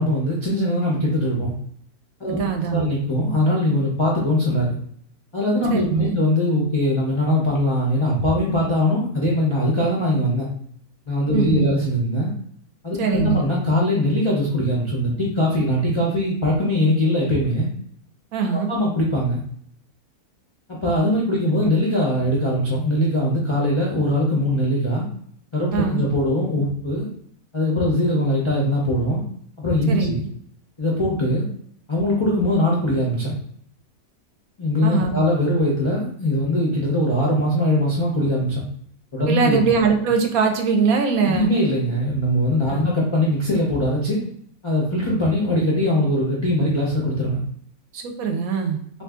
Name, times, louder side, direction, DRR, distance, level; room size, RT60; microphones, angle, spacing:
voice 1, 0.0-1.5 2.2-4.8 5.3-10.5 11.1-12.3 12.8-17.7 18.5-19.4 20.7-25.0 25.5-27.1 27.5-29.2 29.6-30.2 30.8-31.4 31.9-33.3 34.6-38.6 39.1-39.7 41.2-44.2 44.6-47.4, left 1 dB, 45° left, -5 dB, 0.3 m, -21 dB
voice 2, 2.4-2.9 5.7-6.2 11.3-11.7 13.0-13.4 18.3-18.7 25.7-26.0 29.9-30.2 34.8-35.2 39.3-41.5 42.7-42.9 47.9-48.8, right 6 dB, 75° right, 4 dB, 1.0 m, -22 dB
2.6 x 2.5 x 3.5 m, 0.65 s
omnidirectional pair, 1.6 m